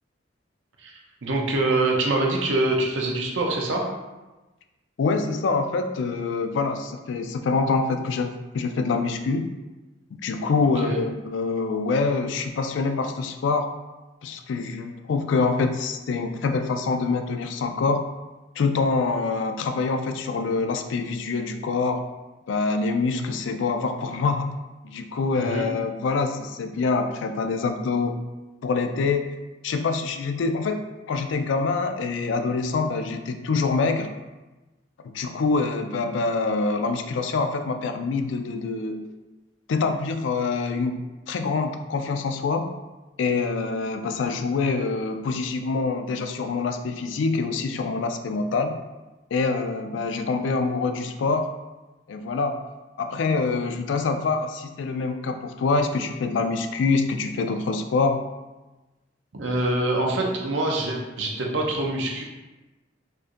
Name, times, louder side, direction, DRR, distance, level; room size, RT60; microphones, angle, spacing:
voice 1, 0.8-3.8 10.8-11.0 25.3-25.6 59.3-62.2, right 2 dB, 85° right, 0 dB, 0.7 m, -25 dB
voice 2, 5.0-9.5 10.2-13.7 14.2-18.0 18.6-22.0 22.5-24.6 24.8-28.1 28.6-29.3 29.6-30.8 31.1-34.1 35.1-39.0 39.7-42.7 43.2-48.8 49.3-51.5 52.1-52.6 53.0-58.2, left 4 dB, 80° left, 6 dB, 0.3 m, -25 dB
4.4 x 2.6 x 2.5 m, 1.1 s
head